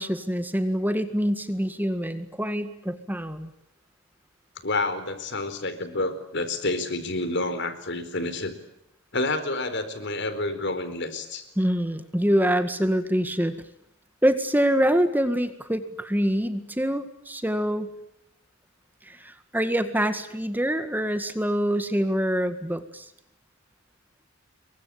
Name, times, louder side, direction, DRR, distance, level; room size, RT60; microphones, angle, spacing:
voice 1, 0.0-3.5 11.6-13.6 14.2-17.9 19.1-23.1, equal, 10° right, 9 dB, 1.9 m, -25 dB
voice 2, 4.6-8.5 9.1-11.5, left 2 dB, 55° left, 11 dB, 4.2 m, -29 dB
28.0 x 23.5 x 8.7 m, 0.79 s
head